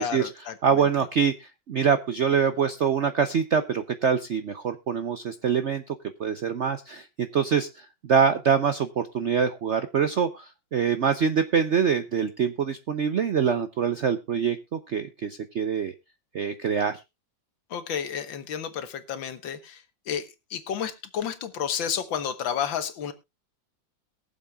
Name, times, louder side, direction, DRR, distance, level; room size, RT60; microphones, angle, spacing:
voice 1, 0.0-0.8 17.7-23.1, left 8 dB, 80° left, 11 dB, 2.0 m, -31 dB
voice 2, 0.6-5.8 6.2-15.9 16.3-17.0, right 7 dB, 65° right, 11 dB, 0.7 m, -25 dB
22.0 x 7.5 x 2.3 m, 0.24 s
omnidirectional pair, 2.1 m